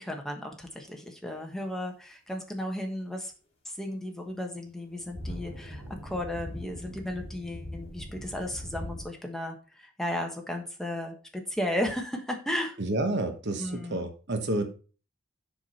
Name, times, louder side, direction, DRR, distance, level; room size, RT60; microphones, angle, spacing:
voice 1, 0.0-3.3 3.8-12.8 13.6-14.1, left 1 dB, ahead, 2 dB, 1.3 m, -34 dB
sound 1, 4.6-9.0, equal, 30° left, 4.3 m, -40 dB
voice 2, 12.8-14.7, right 2 dB, 55° right, 7 dB, 1.1 m, -29 dB
7.1 x 6.1 x 4.2 m, 0.36 s
head